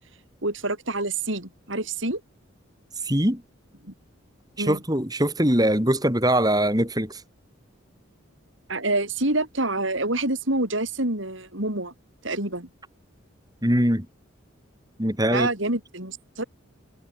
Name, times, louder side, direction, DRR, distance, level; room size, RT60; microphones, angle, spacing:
voice 1, 0.4-2.2 4.6-4.8 8.7-11.9 12.2-12.7 15.3-16.4, right 2 dB, 70° right, 7.2 m, -27 dB
voice 2, 3.0-3.4 4.6-7.2 13.6-14.1 15.0-15.5, right 1 dB, 20° right, 6.4 m, -22 dB
head